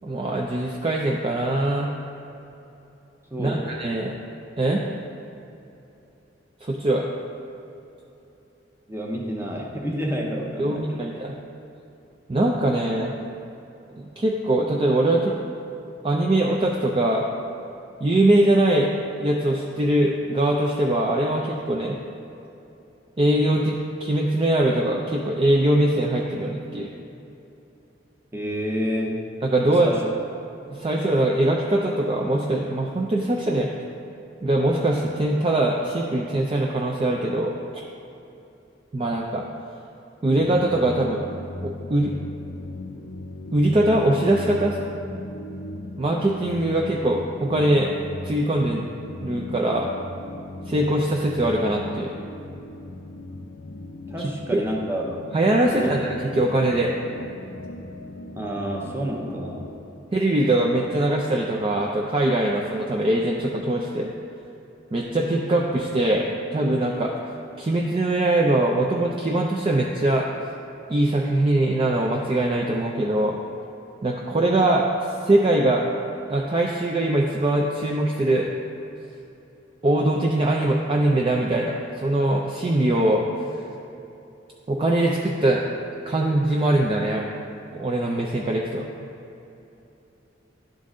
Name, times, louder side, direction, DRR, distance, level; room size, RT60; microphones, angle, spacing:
voice 1, 0.0-1.9 3.4-4.1 4.6-4.8 6.6-7.1 10.6-11.4 12.3-13.1 14.0-15.4 16.0-17.2 18.0-18.9 19.2-22.0 23.2-26.9 29.4-29.9 30.7-33.7 34.4-37.8 38.9-39.4 40.2-41.2 41.6-42.1 43.5-44.8 46.0-47.9 48.2-48.9 49.2-49.9 50.7-52.1 54.2-54.6 55.3-56.1 56.4-56.9 60.1-64.1 64.9-67.1 67.6-70.3 70.9-73.4 74.0-75.8 76.3-78.5 79.8-83.2 83.5-83.6 84.7-85.6 86.1-87.3 87.7-88.9, right 1 dB, 30° right, -1 dB, 0.4 m, -22 dB
voice 2, 3.3-3.7 8.9-11.2 28.3-29.2 29.8-30.1 54.1-55.2 55.7-56.0 58.3-59.7, equal, 15° right, -1 dB, 0.8 m, -29 dB
sound 1, 40.4-59.7, left 2 dB, 85° left, 0.5 m, -38 dB
11.5 x 3.8 x 3.7 m, 2.9 s
head